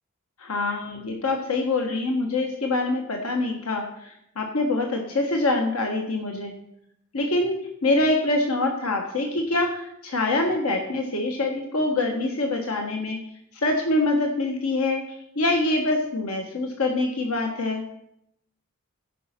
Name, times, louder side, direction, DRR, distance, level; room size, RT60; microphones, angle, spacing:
voice 1, 0.4-6.5 7.1-13.2 13.5-15.0 15.3-17.8, left 2 dB, 90° left, 3 dB, 1.3 m, -25 dB
14.0 x 5.4 x 5.9 m, 0.77 s
head